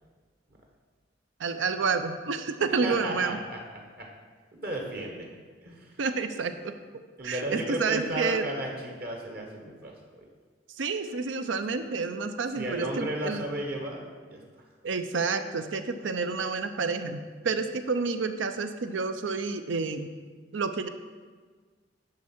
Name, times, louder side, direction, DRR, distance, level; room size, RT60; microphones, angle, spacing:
voice 1, 1.4-3.4 6.0-6.7 7.2-8.4 10.8-13.4 14.8-20.1 20.5-20.9, right 4 dB, 85° right, 9 dB, 0.6 m, -29 dB
voice 2, 2.8-3.6 4.0-4.1 4.5-5.3 5.6-5.9 7.2-10.2 12.5-14.0 14.3-14.4, right 1 dB, 55° right, 1 dB, 1.2 m, -34 dB
10.5 x 3.7 x 6.0 m, 1.5 s
head